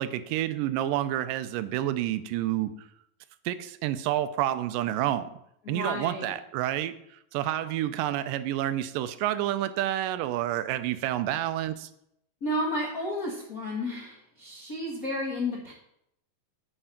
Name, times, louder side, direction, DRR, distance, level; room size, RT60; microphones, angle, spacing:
voice 1, 0.0-2.7 3.5-5.3 5.7-7.0 7.3-11.9, right 13 dB, 85° right, 12 dB, 2.3 m, -29 dB
voice 2, 5.6-6.3 12.4-15.7, left 1 dB, 40° left, -4 dB, 1.3 m, -32 dB
10.0 x 5.5 x 5.7 m, 0.76 s
omnidirectional pair, 3.8 m